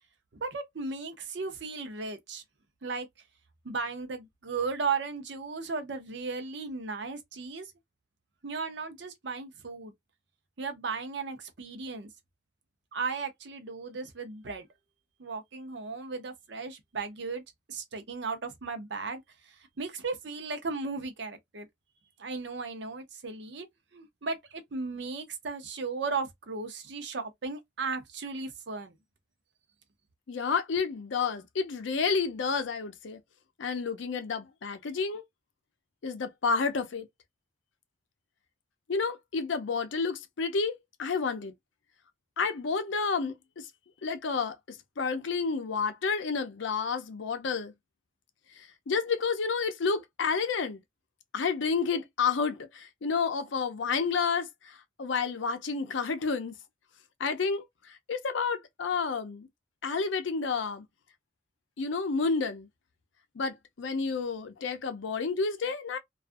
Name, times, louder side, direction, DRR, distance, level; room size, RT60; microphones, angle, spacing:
voice 1, 0.3-2.4 2.8-3.1 3.6-7.7 8.4-9.9 10.6-12.1 12.9-14.7 15.2-17.4 17.7-21.7 22.2-23.7 23.9-28.9, right 4 dB, 65° right, 0.7 m, -36 dB
voice 2, 30.3-33.2 33.6-35.2 36.0-37.1 38.9-41.5 42.4-43.7 44.0-47.7 48.6-50.8 51.3-56.6 57.2-59.5 59.8-60.8 61.8-62.7 63.3-66.0, left 5 dB, 75° left, 0.5 m, -30 dB
2.3 x 2.3 x 2.5 m
head